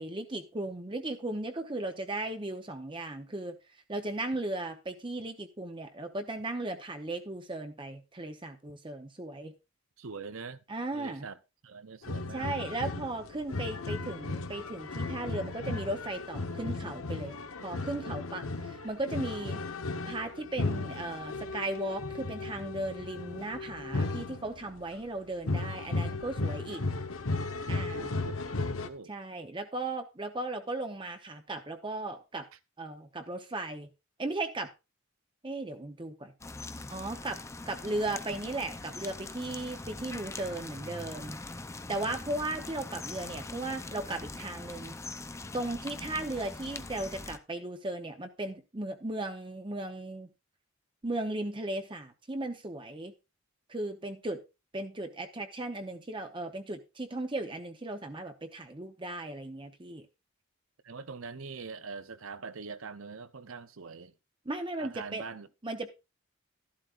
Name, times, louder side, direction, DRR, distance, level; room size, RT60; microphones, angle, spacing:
voice 1, 0.0-3.6 3.9-9.5 10.7-11.3 12.3-17.4 17.6-19.6 20.1-26.8 27.7-28.1 29.1-32.5 32.8-33.9 34.2-34.7 35.4-36.3 36.9-41.4 41.9-45.0 45.5-50.3 51.0-53.1 53.7-54.4 54.7-60.1 64.4-65.2 65.6-65.9, right 2 dB, 25° right, 0.9 m, -36 dB
voice 2, 10.0-10.6 10.9-11.3 11.6-12.6 27.9-28.4 28.8-29.1 60.8-64.1 64.8-65.5, right 4 dB, 75° right, 0.8 m, -43 dB
sound 1, 12.0-24.9 25.5-28.9, left 2 dB, 85° left, 1.2 m, -35 dB
sound 2, 36.4-47.4, left 2 dB, 15° left, 0.5 m, -42 dB
13.0 x 11.5 x 2.5 m
head